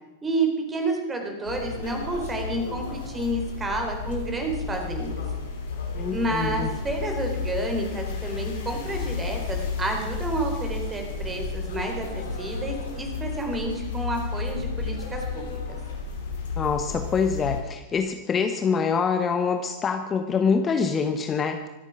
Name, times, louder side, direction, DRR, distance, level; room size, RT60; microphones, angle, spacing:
voice 1, 0.2-5.1 6.1-15.8, right 2 dB, 15° right, 3 dB, 3.9 m, -30 dB
sound 1, 1.5-17.6, left 4 dB, 60° left, 3.0 m, -32 dB
voice 2, 5.9-6.7 16.6-21.7, left 5 dB, 25° left, 6 dB, 1.0 m, -25 dB
25.0 x 9.0 x 6.0 m, 1.1 s
figure-of-eight pair, 90°, 0 cm